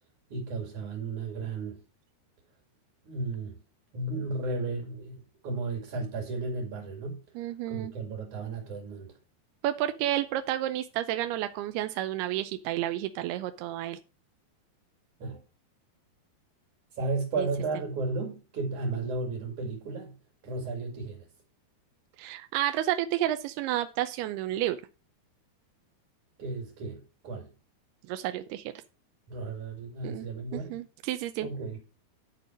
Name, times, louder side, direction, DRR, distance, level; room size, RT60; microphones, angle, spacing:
voice 1, 0.3-1.8 3.0-3.6 3.9-7.2 7.7-9.1 15.2-15.4 17.0-20.1 20.4-21.3 26.4-27.5 29.3-30.8 31.4-31.8, right 3 dB, 50° right, 3.6 m, -34 dB
voice 2, 7.4-7.9 9.6-14.0 17.4-17.5 22.2-24.8 28.1-28.7 30.0-30.3 30.5-31.5, right 13 dB, 80° right, 2.6 m, -31 dB
11.5 x 4.6 x 6.1 m
omnidirectional pair, 4.7 m